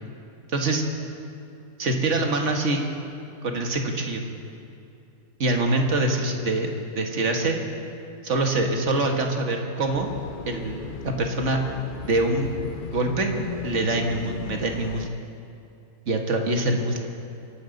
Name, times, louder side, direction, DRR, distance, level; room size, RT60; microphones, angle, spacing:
voice 1, 0.5-0.8 1.8-2.8 3.4-4.2 5.4-7.6 8.2-10.1 10.5-11.6 12.1-12.5 12.9-13.4 13.6-15.1 16.1-17.1, right 2 dB, 50° right, 3 dB, 1.7 m, -24 dB
sound 1, 9.9-15.1, left 7 dB, 65° left, 0.5 m, -36 dB
24.0 x 11.5 x 4.0 m, 2.7 s
omnidirectional pair, 1.7 m